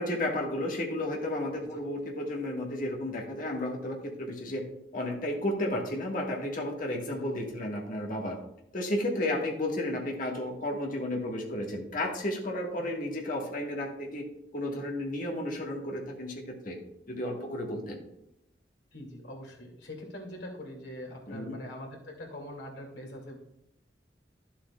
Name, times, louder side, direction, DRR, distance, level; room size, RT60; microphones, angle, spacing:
voice 1, 0.0-4.6 4.9-8.4 8.7-14.2 14.5-16.8 17.1-18.0 21.3-21.6, left 1 dB, 50° left, 0 dB, 1.6 m, -33 dB
voice 2, 18.9-23.4, left 1 dB, 80° left, 0 dB, 2.6 m, -43 dB
11.5 x 7.6 x 2.4 m, 0.82 s
head